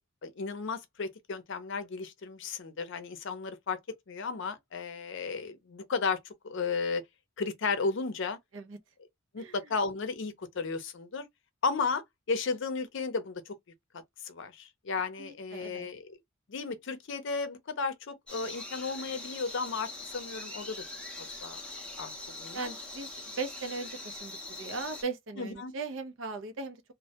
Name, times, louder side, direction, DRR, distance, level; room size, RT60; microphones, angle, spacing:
voice 1, 0.2-3.8 4.1-6.2 6.4-7.0 7.4-8.4 9.3-11.2 11.6-13.5 14.2-16.2 16.5-20.8 21.2-21.6 22.0-22.1 22.4-22.7 25.4-25.7, left 4 dB, 65° left, 0.5 m, -34 dB
voice 2, 15.2-15.9 22.5-23.1 23.4-26.8, right 4 dB, 70° right, 0.5 m, -38 dB
sound 1, 18.3-25.0, left 2 dB, 5° left, 0.6 m, -42 dB
2.1 x 2.1 x 2.8 m
head